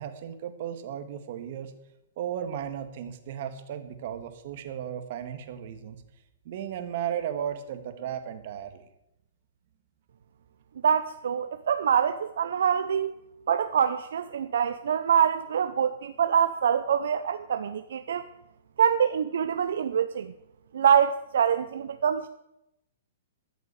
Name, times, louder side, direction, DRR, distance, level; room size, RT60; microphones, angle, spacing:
voice 1, 0.0-1.7 2.2-6.0 6.4-8.9, right 9 dB, 50° right, 8 dB, 1.7 m, -35 dB
voice 2, 10.8-13.1 13.5-18.3 18.8-20.3 20.7-22.3, right 8 dB, 75° right, 10 dB, 0.7 m, -25 dB
14.0 x 6.2 x 8.2 m, 0.85 s
hypercardioid pair, 145°, 0 cm